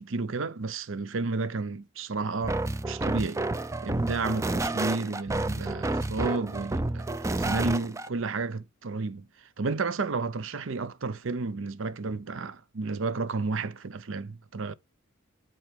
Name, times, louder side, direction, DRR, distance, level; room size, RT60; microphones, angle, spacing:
voice 1, 0.0-2.6 2.9-3.4 3.8-7.1 7.4-14.7, right 3 dB, 65° right, 0.6 m, -32 dB
sound 1, 2.4-8.1, right 2 dB, 15° right, 0.4 m, -30 dB
7.6 x 4.0 x 5.1 m
head